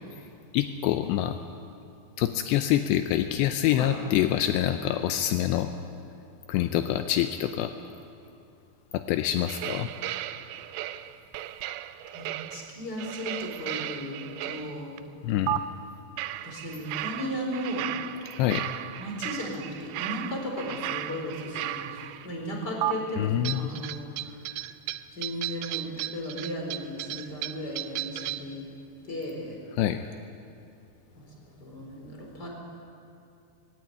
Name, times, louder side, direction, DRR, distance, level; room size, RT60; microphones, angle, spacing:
voice 1, 0.5-1.4 2.2-5.7 6.5-7.7 8.9-9.9 15.2-15.6 18.4-18.7 23.2-23.7 29.7-30.1, left 12 dB, 80° left, 8 dB, 2.8 m, -26 dB
sound 1, 9.5-15.0 15.5-15.6 16.2-22.3 22.8-22.9 23.4-28.5, right 14 dB, 85° right, 2.8 m, -35 dB
voice 2, 12.1-15.0 16.2-18.0 19.0-24.4 25.1-28.7 29.0-29.6 31.1-32.5, equal, 25° left, 0 dB, 4.3 m, -36 dB
19.0 x 17.0 x 9.6 m, 2.5 s
omnidirectional pair, 5.0 m